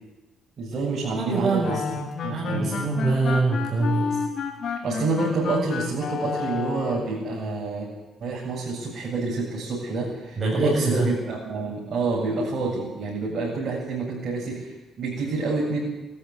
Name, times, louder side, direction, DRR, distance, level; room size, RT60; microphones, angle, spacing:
voice 1, 0.6-1.8 2.2-2.8 4.8-7.9 8.2-15.8, right 3 dB, 55° right, -5 dB, 7.8 m, -28 dB
voice 2, 1.1-4.2 10.4-11.1, right 3 dB, 35° right, -4 dB, 7.1 m, -24 dB
sound 1, 1.6-7.2, left 6 dB, 65° left, 3.3 m, -31 dB
20.5 x 13.5 x 9.7 m, 1.1 s
cardioid pair, 90°, 0 cm